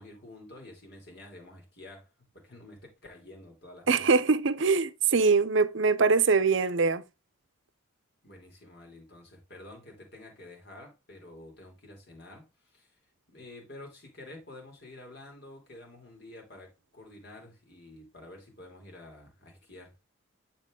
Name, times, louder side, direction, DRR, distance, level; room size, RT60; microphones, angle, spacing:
voice 1, 0.0-2.1 2.3-4.1 8.2-13.0 13.3-20.0, left 2 dB, 50° left, 3.0 m, -49 dB
voice 2, 3.9-7.0, right 4 dB, 60° right, 0.6 m, -23 dB
9.8 x 4.3 x 3.7 m
head